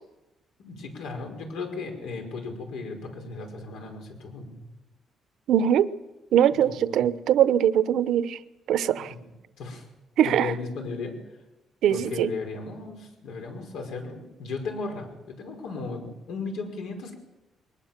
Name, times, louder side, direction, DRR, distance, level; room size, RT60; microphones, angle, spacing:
voice 1, 0.6-4.6 6.7-6.8 9.6-9.8 10.2-11.2 11.9-17.1, left 3 dB, 90° left, 3 dB, 5.5 m, -35 dB
voice 2, 5.5-5.9 6.3-8.4 8.7-9.1 10.2-10.5 11.8-12.3, right 10 dB, 75° right, 15 dB, 0.9 m, -22 dB
22.0 x 20.0 x 7.5 m, 1.0 s
cardioid pair, 135°, 0 cm